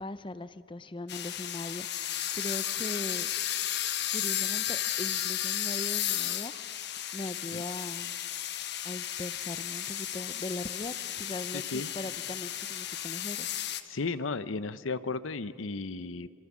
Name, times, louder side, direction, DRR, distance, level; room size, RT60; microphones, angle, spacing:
voice 1, 0.0-3.3 4.1-8.2 8.8-13.6, left 2 dB, 25° left, 13 dB, 0.6 m, -40 dB
sound 1, 1.1-13.8, left 11 dB, 60° left, 1.2 m, -34 dB
voice 2, 11.5-11.9 13.9-16.3, left 4 dB, 80° left, 14 dB, 0.8 m, -34 dB
27.5 x 26.0 x 7.4 m, 2.4 s
head